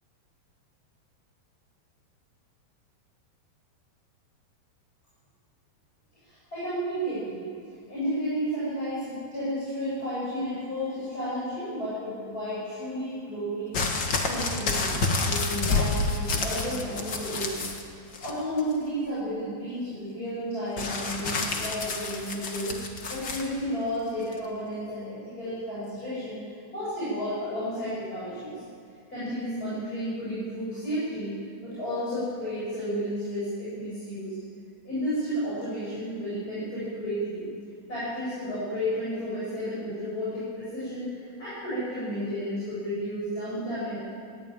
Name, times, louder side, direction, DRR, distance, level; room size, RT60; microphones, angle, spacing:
voice 1, 6.2-7.5 7.9-13.9 14.2-14.9 15.2-17.8 18.2-22.7 23.1-28.6 29.1-31.3 31.6-34.3 34.8-37.5 37.9-44.0, equal, 20° left, -12 dB, 8.1 m, -32 dB
sound 1, 13.7-17.8 18.1-18.7 20.8-23.5 24.3-24.4, left 3 dB, 45° left, 1.7 m, -29 dB
20.5 x 16.0 x 9.0 m, 2.4 s
omnidirectional pair, 4.7 m